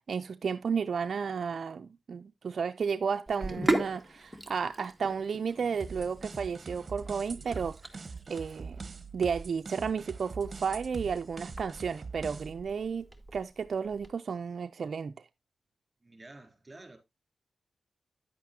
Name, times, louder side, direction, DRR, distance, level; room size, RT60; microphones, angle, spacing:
voice 1, 0.1-7.8 8.3-8.8 9.1-15.1, right 6 dB, 70° right, 0.4 m, -33 dB
Sink (filling or washing), 3.3-14.1, right 1 dB, ahead, 1.8 m, -38 dB
sound 1, 5.8-12.7, right 4 dB, 45° right, 1.0 m, -43 dB
voice 2, 16.0-17.0, right 2 dB, 25° right, 3.8 m, -50 dB
10.0 x 8.4 x 2.7 m
cardioid pair, 65°, 0 cm